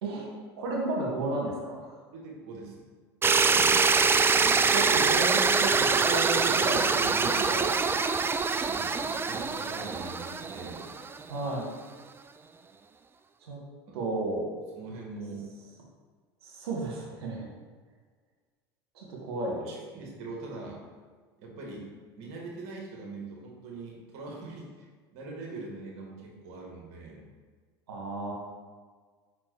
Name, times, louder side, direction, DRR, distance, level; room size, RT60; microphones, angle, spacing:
voice 1, 0.6-1.9 3.5-7.8 11.3-11.7 13.5-13.6 13.9-14.5 16.4-17.5 18.9-19.7 27.9-28.3, right 2 dB, 80° right, -2 dB, 1.5 m, -33 dB
voice 2, 2.1-2.9 4.6-4.7 8.5-10.9 13.9-14.0 14.8-15.5 19.7-20.8 21.4-21.9 22.2-27.3, right 3 dB, 60° right, -2 dB, 1.9 m, -42 dB
sound 1, 3.2-11.2, right 4 dB, 15° right, 0.4 m, -24 dB
5.1 x 4.4 x 4.7 m, 1.5 s
hypercardioid pair, 80°, 13 cm